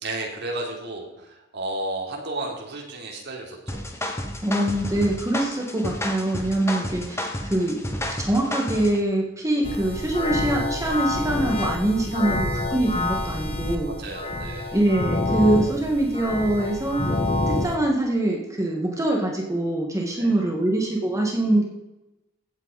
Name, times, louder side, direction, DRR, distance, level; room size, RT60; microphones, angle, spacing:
voice 1, 0.0-3.8 13.9-14.8 20.1-20.3, right 2 dB, 60° right, 0 dB, 3.3 m, -33 dB
sound 1, 3.7-9.0, left 1 dB, 15° left, 1.4 m, -31 dB
voice 2, 4.4-13.9 14.7-17.1 17.5-21.7, right 1 dB, 15° right, 0 dB, 1.7 m, -24 dB
sound 2, 9.6-17.8, left 2 dB, 30° left, 1.4 m, -27 dB
15.0 x 8.9 x 4.1 m, 0.98 s
head